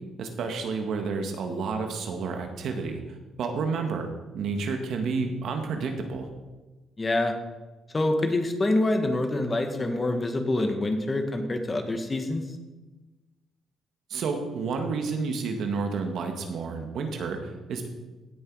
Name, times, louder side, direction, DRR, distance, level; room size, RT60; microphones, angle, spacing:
voice 1, 0.2-3.0 3.4-4.1 4.3-6.3 14.1-17.9, right 4 dB, 70° right, 5 dB, 1.7 m, -30 dB
voice 2, 7.0-7.3 7.9-12.4, left 2 dB, 25° left, 5 dB, 1.6 m, -26 dB
16.5 x 6.7 x 4.8 m, 1.2 s
cardioid pair, 90°, 0 cm